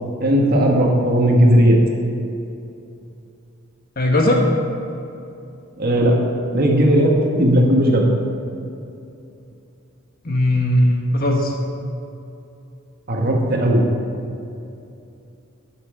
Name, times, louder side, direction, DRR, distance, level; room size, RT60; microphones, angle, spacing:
voice 1, 0.2-1.8 5.8-8.1 13.1-13.9, equal, 50° right, 0 dB, 1.4 m, -16 dB
voice 2, 4.0-4.4 10.2-11.5, left 1 dB, 45° left, 1 dB, 1.3 m, -18 dB
10.5 x 6.0 x 5.0 m, 2.7 s
head